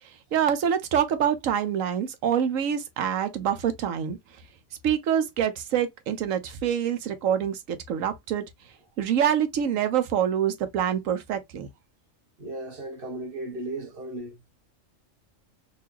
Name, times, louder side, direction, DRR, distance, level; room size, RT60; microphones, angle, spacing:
voice 1, 0.0-4.2 4.8-8.4 9.0-11.7, right 9 dB, 80° right, 1.2 m, -26 dB
voice 2, 12.4-14.4, right 2 dB, 45° right, 1.4 m, -35 dB
4.0 x 2.7 x 2.8 m
omnidirectional pair, 1.4 m